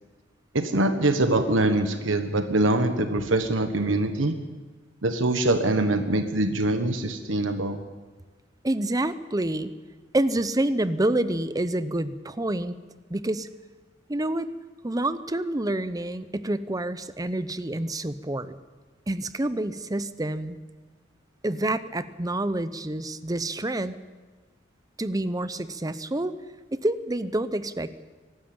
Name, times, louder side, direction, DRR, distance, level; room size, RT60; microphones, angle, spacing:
voice 1, 0.5-4.3 5.0-7.8, right 2 dB, 90° right, 7 dB, 1.3 m, -23 dB
voice 2, 8.6-9.7 10.1-12.8 13.1-13.5 14.1-14.5 14.8-18.5 19.1-20.6 21.4-24.0 25.0-26.3 26.7-28.0, right 1 dB, 20° right, 14 dB, 0.7 m, -28 dB
23.0 x 13.0 x 8.8 m, 1.3 s
head